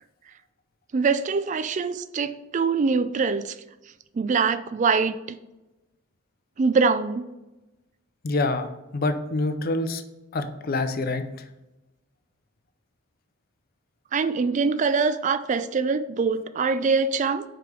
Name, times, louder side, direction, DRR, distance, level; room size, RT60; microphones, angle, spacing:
voice 1, 0.9-3.6 4.1-5.1 6.6-7.3 14.1-17.4, right 4 dB, 40° right, 0.3 m, -23 dB
voice 2, 8.2-8.7 8.9-10.0 10.3-11.2, left 2 dB, 50° left, 0.5 m, -26 dB
4.9 x 4.9 x 4.7 m
head